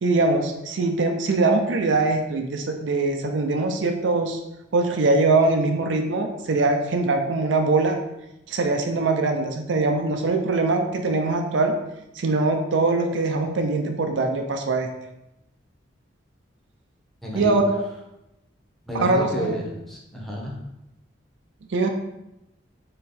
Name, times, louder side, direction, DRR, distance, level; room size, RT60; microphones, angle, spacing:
voice 1, 0.0-4.4 4.7-8.0 8.5-11.7 12.2-14.9 17.3-17.8 18.9-19.6 21.7-21.9, right 3 dB, 70° right, 4 dB, 0.5 m, -22 dB
voice 2, 17.2-17.5 18.9-20.6, equal, ahead, -4 dB, 0.8 m, -30 dB
3.8 x 3.1 x 4.2 m, 0.90 s
head